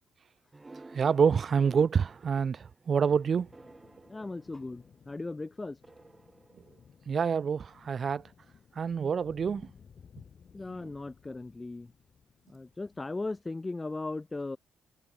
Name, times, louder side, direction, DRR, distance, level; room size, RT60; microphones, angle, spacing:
sound 1, 0.5-5.1 5.8-7.4, right 3 dB, 20° right, 3.2 m, -53 dB
voice 1, 0.9-3.5 7.1-8.2 8.8-9.7, right 6 dB, 45° right, 0.4 m, -27 dB
sound 2, 2.9-13.4, left 7 dB, 50° left, 3.5 m, -58 dB
voice 2, 4.1-5.8 10.5-11.9 12.5-14.6, left 2 dB, 20° left, 0.4 m, -37 dB
cardioid pair, 90°, 0 cm